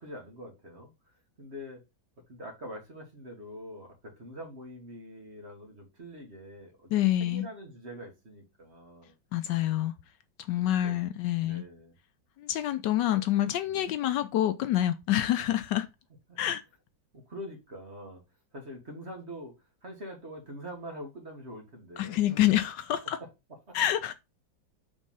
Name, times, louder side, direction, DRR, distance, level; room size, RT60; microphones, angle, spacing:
voice 1, 0.0-1.8 2.3-9.2 10.6-11.0 11.4-12.0 13.7-13.9 16.3-16.4 17.1-18.2 18.5-22.2 23.2-23.3 23.7-23.8, equal, 35° right, 1.9 m, -44 dB
voice 2, 6.9-7.5 9.3-9.9 10.5-11.6 12.4-15.9 16.4-16.6 22.0-23.2 23.7-24.1, left 13 dB, 75° left, 1.1 m, -27 dB
5.4 x 3.6 x 5.4 m
omnidirectional pair, 2.1 m